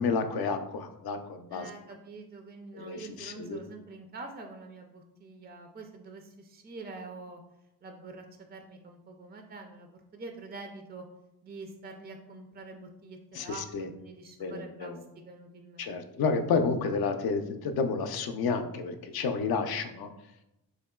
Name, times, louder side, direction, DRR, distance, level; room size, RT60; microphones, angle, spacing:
voice 1, 0.0-1.7 2.7-3.6 13.3-13.9 14.4-15.0 15.8-20.1, left 4 dB, 65° left, 8 dB, 0.5 m, -30 dB
voice 2, 1.5-7.4 7.8-11.0 11.4-13.6 14.0-15.0 15.2-16.0, right 3 dB, 25° right, 4 dB, 0.3 m, -46 dB
3.7 x 2.9 x 2.2 m, 0.88 s
cardioid pair, 60°, 41 cm